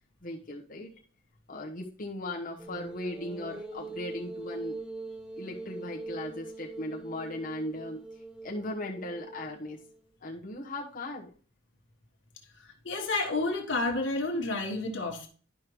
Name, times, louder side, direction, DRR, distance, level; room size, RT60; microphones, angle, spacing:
voice 1, 0.2-0.9 1.5-4.8 5.4-8.0 8.4-9.8 10.2-11.3, left 1 dB, 45° left, -2 dB, 1.1 m, -38 dB
sound 1, 2.6-10.0, right 2 dB, 5° right, 0.8 m, -42 dB
voice 2, 12.8-15.3, left 2 dB, 85° left, 1 dB, 1.4 m, -30 dB
11.5 x 5.1 x 3.1 m, 0.40 s
head